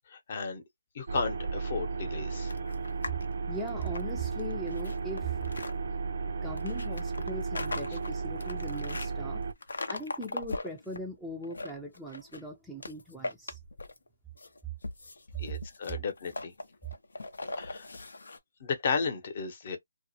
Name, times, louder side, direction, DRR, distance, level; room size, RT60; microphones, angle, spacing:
voice 1, 0.1-0.6 0.9-2.5 15.4-16.5 17.6-17.9 18.6-19.8, left 5 dB, 40° left, 0.7 m, -34 dB
sound 1, 1.1-9.5, right 4 dB, 60° right, 0.4 m, -34 dB
sound 2, 2.5-3.2 3.6-5.7 6.6-9.1 9.6-11.0 11.4-12.5 12.8-14.1 14.4-18.4, left 2 dB, 85° left, 0.5 m, -40 dB
voice 2, 3.5-5.4 6.3-9.4 9.9-13.6, right 1 dB, ahead, 0.4 m, -40 dB
2.4 x 2.0 x 2.7 m
hypercardioid pair, 160°, 0 cm